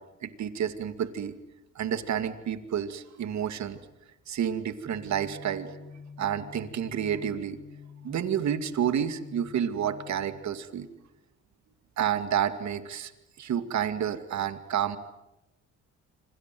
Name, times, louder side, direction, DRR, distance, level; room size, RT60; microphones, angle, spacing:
voice 1, 0.2-1.3 1.8-3.8 4.3-5.9 6.2-7.6 8.0-10.9 12.0-13.1 13.4-15.0, right 9 dB, 65° right, 10 dB, 2.4 m, -30 dB
sound 1, 4.8-10.4, left 6 dB, 75° left, 6.8 m, -47 dB
28.0 x 26.0 x 7.8 m, 0.96 s
cardioid pair, 90°, 30 cm